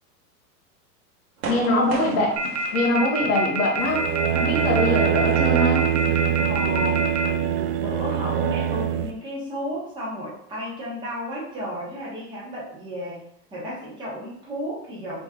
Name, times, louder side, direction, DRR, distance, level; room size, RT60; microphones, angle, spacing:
sound 1, 1.4-7.4, right 3 dB, 60° right, 1.2 m, -39 dB
voice 1, 1.5-4.0 4.3-5.9, left 1 dB, 20° left, -1 dB, 0.5 m, -23 dB
sound 2, 2.4-7.3, right 2 dB, 45° right, 0.5 m, -26 dB
sound 3, 3.8-9.1, right 10 dB, 90° right, 0.6 m, -23 dB
voice 2, 6.1-13.2 13.5-15.2, equal, 10° right, -7 dB, 1.0 m, -33 dB
3.1 x 3.0 x 3.6 m, 0.72 s
supercardioid pair, 155°, 46 cm